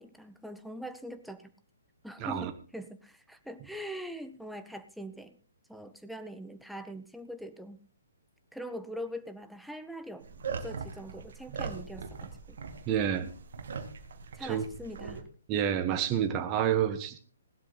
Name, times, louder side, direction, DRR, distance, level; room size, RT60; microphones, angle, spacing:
voice 1, 0.0-1.5 2.0-5.4 5.7-7.8 8.5-10.3 10.6-12.6 14.3-15.2, equal, ahead, 8 dB, 1.0 m, -42 dB
voice 2, 2.2-2.5 12.9-13.3 14.4-14.6 15.5-17.2, right 9 dB, 25° right, 8 dB, 1.3 m, -28 dB
sound 1, 10.2-15.2, right 5 dB, 55° right, 2.0 m, -40 dB
17.0 x 12.0 x 4.0 m, 0.39 s
figure-of-eight pair, 125°, 0 cm